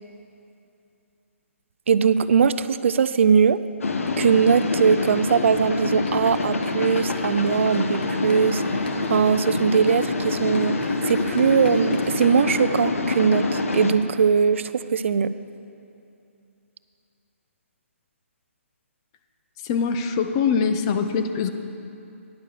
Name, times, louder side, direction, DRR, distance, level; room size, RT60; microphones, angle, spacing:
voice 1, 1.9-3.6 4.2-8.6 9.1-15.3, right 6 dB, 60° right, 14 dB, 0.3 m, -20 dB
sound 1, 3.8-13.9, left 3 dB, 80° left, 0.9 m, -26 dB
sound 2, 5.9-12.3, left 3 dB, 45° left, 1.1 m, -40 dB
voice 2, 19.6-21.5, left 6 dB, 20° left, 8 dB, 0.4 m, -23 dB
9.9 x 6.5 x 6.7 m, 2.7 s
hypercardioid pair, 160°, 7 cm